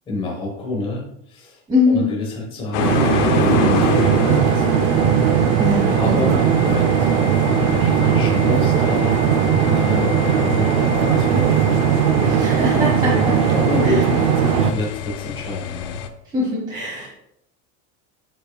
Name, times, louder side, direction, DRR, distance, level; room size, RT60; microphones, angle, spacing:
voice 1, 0.1-1.6 1.9-4.7 5.9-7.1 7.6-11.7 12.7-16.0, left 2 dB, 15° left, -2 dB, 1.2 m, -28 dB
voice 2, 1.7-2.1 5.6-6.3 12.3-13.1 13.8-13.9 16.3-17.1, left 3 dB, 10° right, -7 dB, 1.4 m, -21 dB
sound 1, 2.7-16.1, left 9 dB, 80° left, 0.8 m, -28 dB
sound 2, 2.8-14.7, right 8 dB, 40° right, 0.5 m, -18 dB
7.8 x 6.9 x 2.3 m, 0.77 s
supercardioid pair, 170°, 36 cm